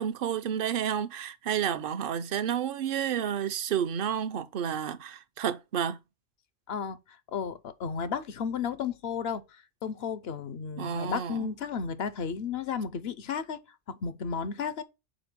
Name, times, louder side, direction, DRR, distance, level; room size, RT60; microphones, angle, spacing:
voice 1, 0.0-6.0 10.8-11.5, right 9 dB, 60° right, 0.8 m, -30 dB
voice 2, 6.7-7.0 7.3-9.4 9.8-13.6 13.9-14.8, left 6 dB, 75° left, 1.0 m, -33 dB
5.1 x 4.5 x 6.0 m
omnidirectional pair, 1.1 m